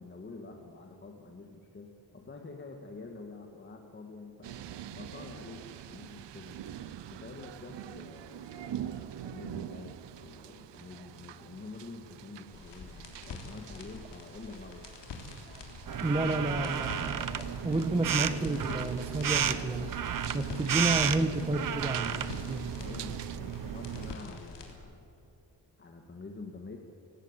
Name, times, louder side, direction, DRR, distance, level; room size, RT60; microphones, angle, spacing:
voice 1, 0.0-6.7 7.1-14.9 22.8-25.1 25.8-26.8, left 3 dB, 25° left, 2 dB, 1.8 m, -47 dB
sound 1, 4.4-23.4, right 11 dB, 85° right, 0.9 m, -46 dB
sound 2, 12.5-24.7, left 4 dB, 80° left, 3.6 m, -47 dB
sound 3, 15.9-24.1, right 8 dB, 50° right, 1.0 m, -33 dB
voice 2, 16.0-19.9 20.3-22.7, right 2 dB, 15° right, 4 dB, 1.2 m, -31 dB
25.5 x 18.5 x 8.1 m, 2.8 s
wide cardioid pair, 175°, 42 cm